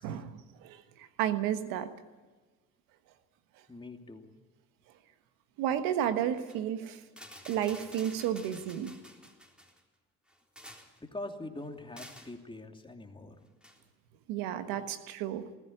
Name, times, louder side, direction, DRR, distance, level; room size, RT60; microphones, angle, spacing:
voice 1, 0.0-1.9 5.6-7.0 7.4-8.9 14.3-15.4, right 10 dB, 80° right, 10 dB, 1.4 m, -32 dB
voice 2, 3.7-4.3 11.0-13.4, left 2 dB, 15° left, 4 dB, 2.7 m, -43 dB
sound 1, 6.3-6.6 7.1-9.8 10.3-11.0 12.0-12.4 13.6-13.8, equal, 5° right, 3.8 m, -50 dB
19.5 x 14.5 x 10.0 m, 1.3 s
supercardioid pair, 70°, 34 cm